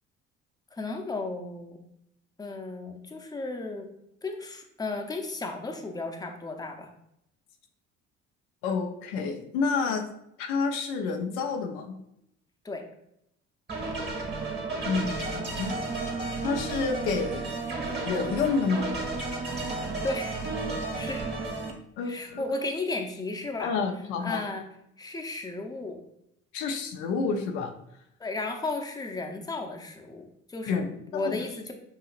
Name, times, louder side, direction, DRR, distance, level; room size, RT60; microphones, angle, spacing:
voice 1, 0.7-1.8 2.4-3.9 4.2-6.9 12.6-12.8 20.0-20.4 20.9-21.3 22.0-23.8 24.2-24.7 25.0-26.0 28.2-30.8 31.1-31.7, left 2 dB, 10° left, 3 dB, 0.8 m, -34 dB
voice 2, 8.6-10.1 10.4-11.9 14.8-15.7 16.4-17.5 18.0-19.0 22.0-22.4 23.6-24.4 26.5-27.7 30.6-31.4, left 5 dB, 75° left, 3 dB, 0.8 m, -29 dB
sound 1, 13.7-21.7, right 3 dB, 30° right, 1.6 m, -32 dB
7.0 x 2.8 x 2.5 m, 0.77 s
hypercardioid pair, 60°, 35 cm